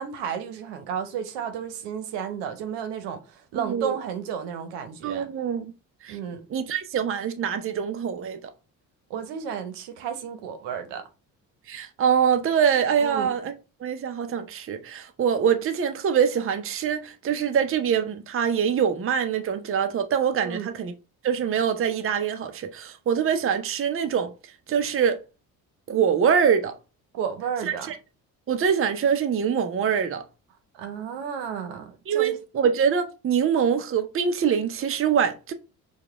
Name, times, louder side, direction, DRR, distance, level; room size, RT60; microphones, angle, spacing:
voice 1, 0.0-5.3 6.1-6.4 9.1-11.0 13.0-13.3 20.4-20.7 27.1-27.9 30.8-32.3, right 7 dB, 75° right, 0.9 m, -32 dB
voice 2, 3.5-4.0 5.0-5.7 6.0-6.2 6.5-8.4 11.7-13.5 13.8-20.9 21.2-24.3 24.7-25.2 25.9-26.8 27.6-28.0 28.5-30.2 32.1-35.5, right 7 dB, 30° right, 0.6 m, -24 dB
4.7 x 2.4 x 3.4 m
hypercardioid pair, 60°, 42 cm